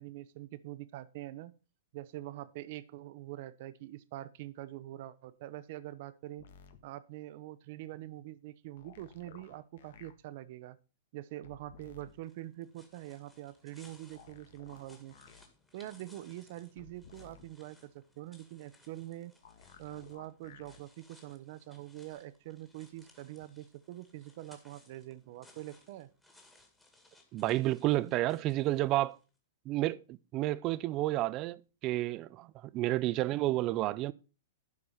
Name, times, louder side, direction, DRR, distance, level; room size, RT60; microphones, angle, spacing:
voice 1, 0.0-1.5 1.9-6.5 6.8-10.8 11.1-15.2 15.7-19.3 19.8-26.1, right 15 dB, 50° right, 0.8 m, -45 dB
sound 1, 6.4-6.8 8.8-10.1 11.4-12.1 14.1-15.5 16.8-17.5 19.4-20.8 22.1-22.2, left 7 dB, 70° left, 1.6 m, -56 dB
sound 2, 12.1-29.3, left 2 dB, 5° left, 2.2 m, -64 dB
voice 2, 27.3-29.2 29.7-34.1, right 16 dB, 30° right, 0.5 m, -31 dB
12.0 x 4.9 x 5.6 m
hypercardioid pair, 150°, 0 cm